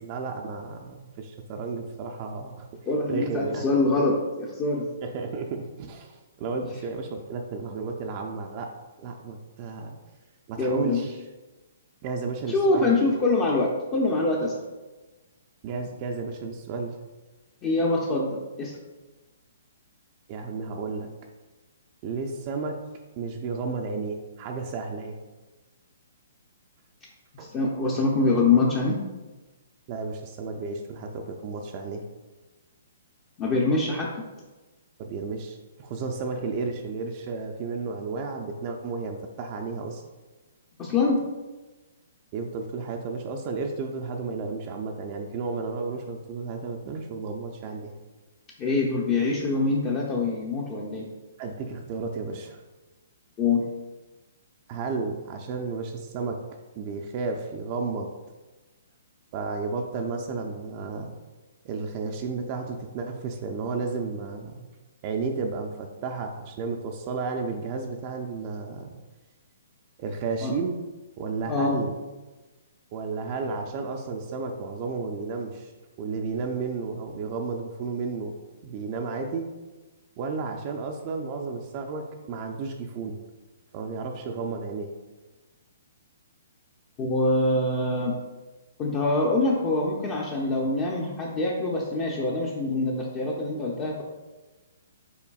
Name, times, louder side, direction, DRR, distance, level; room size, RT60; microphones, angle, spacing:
voice 1, 0.0-2.8 3.1-3.7 5.0-8.7 9.0-10.0 10.5-11.2 12.0-12.9 15.6-17.0 20.3-21.1 22.0-22.8 23.2-25.2 27.4-27.5 29.9-32.0 35.0-40.0 42.3-47.9 51.4-52.6 54.7-56.4 56.8-58.1 59.3-61.1 61.6-64.7 65.0-69.0 70.0-70.8 71.2-71.9 72.9-75.7 76.0-78.3 78.6-79.5 80.2-83.2 83.7-84.9, right 4 dB, 35° right, 2 dB, 0.4 m, -32 dB
voice 2, 2.9-4.9 10.6-11.0 12.5-14.5 17.6-18.8 27.3-29.0 33.4-34.3 40.8-41.2 48.6-51.1 53.4-53.6 70.4-70.5 71.5-71.8 87.0-88.2 88.8-94.0, left 3 dB, 25° left, -3 dB, 0.6 m, -24 dB
5.8 x 3.9 x 2.3 m, 1.2 s
hypercardioid pair, 140°, 0 cm